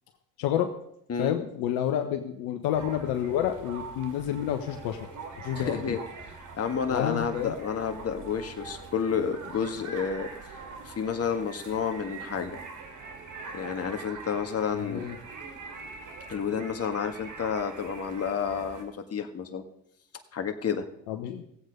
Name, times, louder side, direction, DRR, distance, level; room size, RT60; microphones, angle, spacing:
voice 1, 0.4-0.7 1.2-5.0 5.4-6.0 6.9-7.5 14.8-15.2 21.1-21.4, left 10 dB, 70° left, 6 dB, 1.2 m, -29 dB
sound 1, 2.7-18.8, right 4 dB, 50° right, 2.7 m, -43 dB
voice 2, 5.6-10.3 10.9-12.6 13.5-15.1 16.3-19.6 20.3-20.9, left 6 dB, 40° left, 7 dB, 1.8 m, -30 dB
16.5 x 8.1 x 5.3 m, 0.74 s
hypercardioid pair, 65°, 38 cm